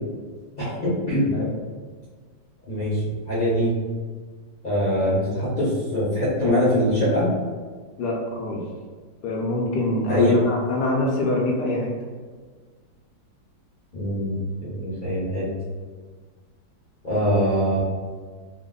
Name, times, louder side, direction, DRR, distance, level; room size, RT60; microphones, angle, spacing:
voice 1, 0.6-1.3 2.7-3.0 3.3-3.7 4.6-7.3 10.1-10.4 13.9-14.4 14.6-15.5 17.0-17.8, left 1 dB, 40° left, -8 dB, 0.7 m, -22 dB
voice 2, 8.0-8.6 9.2-11.9, left 1 dB, 70° left, -1 dB, 1.1 m, -25 dB
3.3 x 2.1 x 3.7 m, 1.5 s
omnidirectional pair, 2.1 m